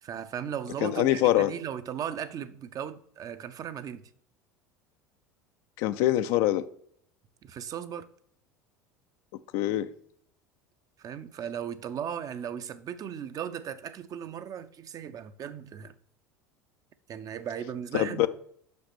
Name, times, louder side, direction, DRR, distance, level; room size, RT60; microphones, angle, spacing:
voice 1, 0.0-4.0 7.4-8.1 11.0-15.9 17.1-18.3, right 8 dB, 40° right, 0.6 m, -37 dB
voice 2, 0.8-1.5 5.8-6.7 9.5-9.9 17.9-18.3, left 14 dB, 60° left, 0.4 m, -24 dB
5.9 x 5.3 x 6.0 m
hypercardioid pair, 75°, 9 cm